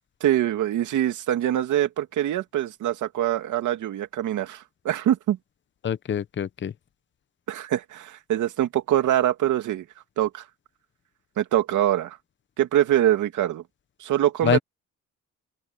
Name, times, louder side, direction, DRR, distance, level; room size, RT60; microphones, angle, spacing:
voice 1, 0.2-5.4 7.5-9.8 10.2-10.4 11.4-12.2 12.6-13.6 14.0-14.6, right 12 dB, 80° right, 2.6 m, -24 dB
voice 2, 5.8-6.7 14.4-14.6, left 8 dB, 40° left, 0.8 m, -25 dB
open air
cardioid pair, 90°, 30 cm